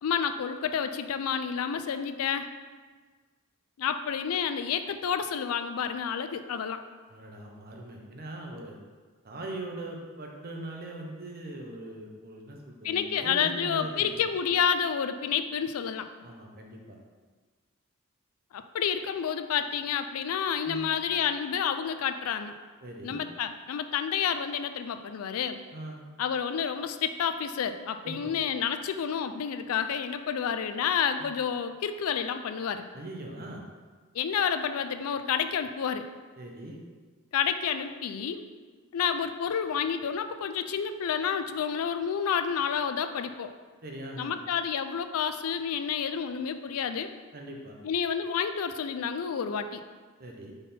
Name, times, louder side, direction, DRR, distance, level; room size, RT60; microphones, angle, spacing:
voice 1, 0.0-2.5 3.8-6.8 12.8-16.1 18.5-22.5 23.0-25.6 26.2-32.8 34.1-36.1 37.3-38.4 38.9-43.5 44.2-47.1 47.8-49.8, left 7 dB, 85° left, 9 dB, 0.4 m, -29 dB
voice 2, 7.1-8.8 9.2-14.2 16.2-17.0 20.6-20.9 22.8-23.2 25.7-26.0 28.0-28.3 31.2-31.3 32.9-33.7 36.4-36.8 43.8-44.4 47.3-47.8 50.2-50.5, right 1 dB, 45° right, 0 dB, 0.8 m, -41 dB
5.5 x 4.1 x 4.2 m, 1.4 s
head